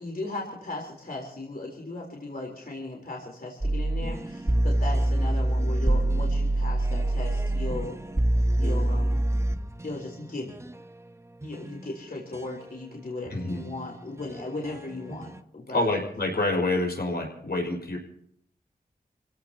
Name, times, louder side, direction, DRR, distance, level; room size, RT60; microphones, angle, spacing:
voice 1, 0.0-8.0 8.6-9.3 9.8-10.5 11.4-16.0, left 2 dB, 65° left, -1 dB, 3.9 m, -37 dB
sound 1, 3.6-10.8 11.4-12.6 13.3-15.4, right 1 dB, 15° right, 0.9 m, -26 dB
voice 2, 15.7-18.0, left 2 dB, 85° left, 0 dB, 5.5 m, -27 dB
29.0 x 17.0 x 2.9 m, 0.71 s
wide cardioid pair, 60°, 16 cm